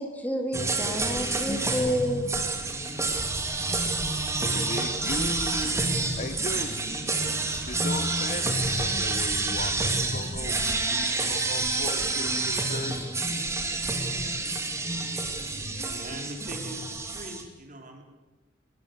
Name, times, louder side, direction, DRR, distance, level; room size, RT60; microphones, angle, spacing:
voice 1, 0.0-2.3, equal, 10° left, 4 dB, 2.9 m, -29 dB
sound 1, 0.5-17.4, right 3 dB, 15° right, 2.8 m, -28 dB
voice 2, 4.3-5.8 6.2-6.8 7.5-13.1, left 2 dB, 40° left, 10 dB, 1.4 m, -37 dB
voice 3, 15.8-18.0, right 1 dB, 45° right, 3 dB, 4.3 m, -42 dB
23.0 x 20.0 x 8.4 m, 1.1 s
head